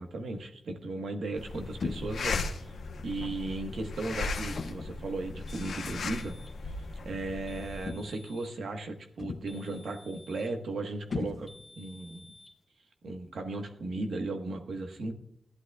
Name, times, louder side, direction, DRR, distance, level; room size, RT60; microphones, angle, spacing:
voice 1, 0.0-2.7 3.0-6.3 6.7-12.3 13.0-15.1, right 2 dB, 85° right, 4 dB, 1.3 m, -36 dB
sound 1, 1.4-7.9, left 4 dB, 90° left, 1.0 m, -37 dB
sound 2, 1.8-2.3 3.2-3.5 4.5-5.0 6.2-6.4 7.8-8.3 9.2-9.7 11.1-11.8, left 4 dB, 55° left, 0.5 m, -38 dB
sound 3, 5.5-6.6 7.5-8.6 9.5-10.6 11.5-12.6, left 2 dB, 20° left, 1.6 m, -55 dB
16.0 x 11.0 x 2.4 m, 0.71 s
wide cardioid pair, 105°, 0 cm